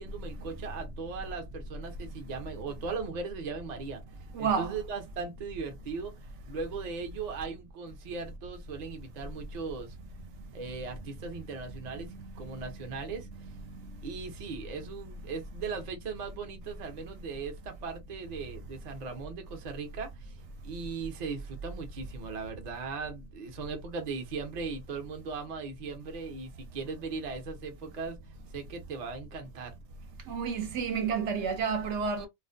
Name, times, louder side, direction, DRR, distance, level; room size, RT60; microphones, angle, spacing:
voice 1, 0.0-4.0 4.4-6.2 6.5-10.0 10.5-13.3 14.0-28.2 28.5-29.8, right 4 dB, 45° right, 0.6 m, -38 dB
voice 2, 4.3-4.8 12.5-12.6 30.3-32.3, right 6 dB, 70° right, 0.9 m, -30 dB
2.4 x 2.1 x 2.5 m
omnidirectional pair, 1.3 m